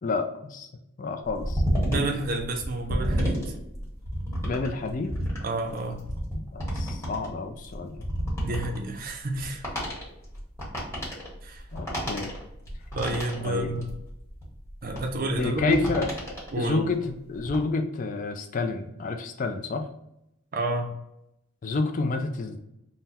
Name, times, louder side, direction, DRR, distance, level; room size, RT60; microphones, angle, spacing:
voice 1, 0.0-0.7 1.0-1.6 4.4-5.1 6.3-8.0 11.7-12.3 13.4-13.7 15.4-16.1 16.6-19.9 21.6-22.6, left 3 dB, 40° left, 4 dB, 0.4 m, -29 dB
sound 1, 1.3-16.7 17.1-17.6, equal, 15° left, 1.3 m, -31 dB
voice 2, 1.8-3.4 5.4-6.1 8.4-9.6 11.4-11.6 12.9-13.9 14.8-15.8 16.5-16.9 20.5-20.9, right 2 dB, 45° right, 2 dB, 0.5 m, -29 dB
3.8 x 2.1 x 4.1 m, 0.83 s
head